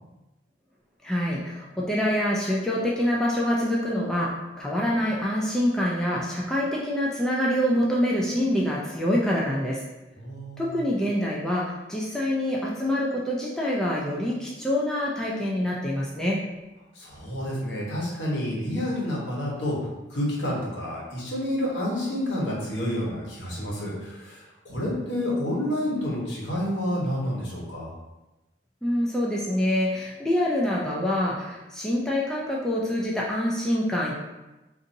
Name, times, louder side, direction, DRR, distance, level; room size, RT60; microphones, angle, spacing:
voice 1, 1.0-9.8 10.6-16.4 28.8-34.1, left 1 dB, 5° left, -5 dB, 0.4 m, -26 dB
voice 2, 10.2-10.7 16.9-19.8 20.1-27.9, left 1 dB, 70° left, -4 dB, 1.1 m, -29 dB
3.9 x 2.6 x 2.6 m, 1.0 s
head